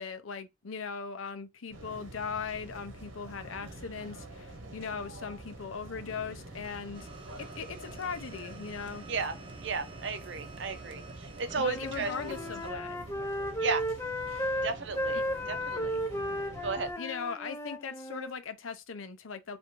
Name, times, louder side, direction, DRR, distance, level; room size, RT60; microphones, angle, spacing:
voice 1, 0.0-7.1 7.4-9.1 11.6-13.0 15.1-15.2 17.0-19.6, left 5 dB, 90° left, 0.7 m, -39 dB
sound 1, 1.7-16.9, right 2 dB, 85° right, 1.2 m, -46 dB
sound 2, 6.9-12.7, right 3 dB, 25° right, 0.7 m, -50 dB
voice 2, 9.6-11.0 11.4-12.3 12.6-12.8 13.6-13.8 14.6-16.0 16.6-16.9, right 4 dB, 60° right, 0.7 m, -34 dB
Wind instrument woodwind instrument, 11.5-18.4, equal, 15° left, 0.5 m, -34 dB
3.5 x 2.6 x 4.5 m
head